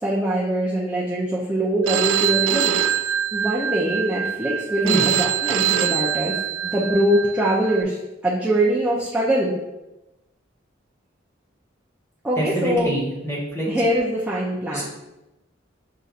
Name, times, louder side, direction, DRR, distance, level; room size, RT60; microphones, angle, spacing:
voice 1, 0.0-6.4 6.6-8.0 8.2-9.5 12.2-12.9 13.7-14.9, right 1 dB, 5° right, -8 dB, 0.5 m, -23 dB
Telephone, 1.9-7.8, right 9 dB, 85° right, 0.3 m, -24 dB
voice 2, 12.4-13.7 14.7-14.9, right 1 dB, 15° left, -6 dB, 1.2 m, -25 dB
6.5 x 2.7 x 2.4 m, 0.97 s
head